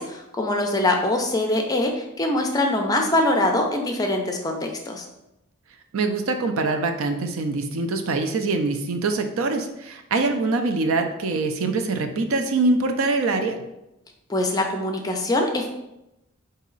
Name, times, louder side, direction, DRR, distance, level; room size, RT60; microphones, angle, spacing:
voice 1, 0.0-5.0 14.3-15.7, left 1 dB, 20° left, 2 dB, 0.4 m, -23 dB
voice 2, 5.9-13.6, right 3 dB, 70° right, 6 dB, 0.5 m, -24 dB
4.0 x 2.7 x 3.9 m, 0.90 s
head